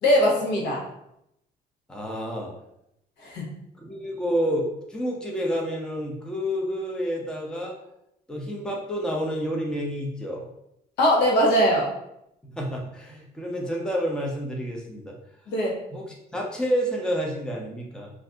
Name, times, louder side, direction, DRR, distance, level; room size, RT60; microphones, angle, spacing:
voice 1, 0.0-0.8 3.2-3.5 11.0-11.9 15.5-15.7, equal, 80° left, -3 dB, 1.0 m, -21 dB
voice 2, 1.9-2.5 3.8-7.8 8.3-10.5 12.5-15.1 15.9-18.1, equal, 5° left, -1 dB, 0.6 m, -29 dB
2.6 x 2.5 x 3.4 m, 0.80 s
cardioid pair, 110°, 17 cm